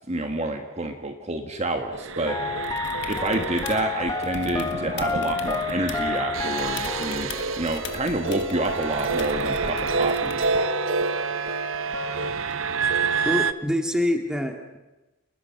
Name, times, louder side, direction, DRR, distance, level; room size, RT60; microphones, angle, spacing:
voice 1, 0.1-2.5 3.1-7.3 7.6-10.5, right 1 dB, 30° right, 5 dB, 1.7 m, -28 dB
sound 1, 1.9-13.5, right 4 dB, 65° right, 0.9 m, -28 dB
sound 2, 2.3-10.3 10.5-12.3, left 4 dB, 15° left, 1.0 m, -32 dB
sound 3, 2.6-3.9 4.2-6.2 6.6-10.6 12.5-12.6, left 5 dB, 55° left, 1.9 m, -41 dB
voice 2, 13.2-14.8, left 1 dB, 5° right, 4 dB, 2.1 m, -25 dB
29.0 x 20.5 x 6.0 m, 1.1 s
head